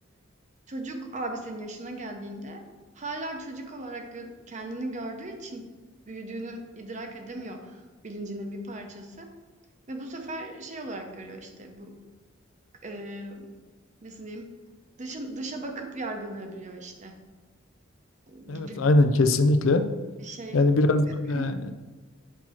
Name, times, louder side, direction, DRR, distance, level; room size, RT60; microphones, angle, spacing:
voice 1, 0.7-2.6 2.9-5.7 6.1-9.3 9.9-12.0 12.8-13.6 14.0-14.5 15.0-17.1 18.3-18.8 20.2-20.7 21.3-21.5, right 2 dB, 40° right, 4 dB, 0.9 m, -37 dB
voice 2, 18.5-19.8 20.5-21.7, left 2 dB, 75° left, 9 dB, 0.5 m, -21 dB
8.3 x 2.9 x 5.8 m, 1.4 s
head